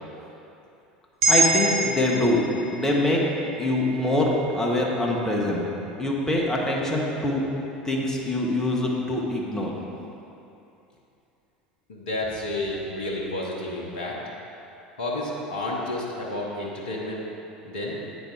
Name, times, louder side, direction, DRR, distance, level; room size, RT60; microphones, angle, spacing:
sound 1, 1.2-5.7 6.1-6.2, right 2 dB, 50° right, 1.7 m, -28 dB
voice 1, 1.3-2.4 2.7-3.2 3.6-4.3 4.5-5.6 6.0-7.5 7.8-9.7, left 1 dB, 10° left, -3 dB, 1.3 m, -24 dB
voice 2, 11.9-14.2 15.0-17.2 17.6-18.0, left 1 dB, 70° left, -3 dB, 0.9 m, -30 dB
8.6 x 4.4 x 4.9 m, 2.8 s
figure-of-eight pair, 75°, 5 cm